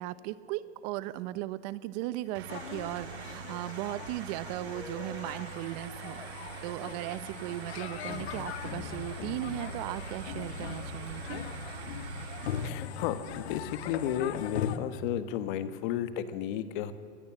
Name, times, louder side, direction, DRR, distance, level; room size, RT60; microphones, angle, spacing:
voice 1, 0.0-6.2 6.6-11.4, right 15 dB, 40° right, 17 dB, 0.8 m, -37 dB
sound 1, 2.3-12.7, right 10 dB, 75° right, 1.8 m, -44 dB
sound 2, 2.5-14.8, left 8 dB, 75° left, 1.8 m, -40 dB
voice 2, 12.6-16.9, left 10 dB, 50° left, 12 dB, 1.6 m, -33 dB
24.5 x 19.5 x 7.6 m, 2.3 s
supercardioid pair, 145°, 33 cm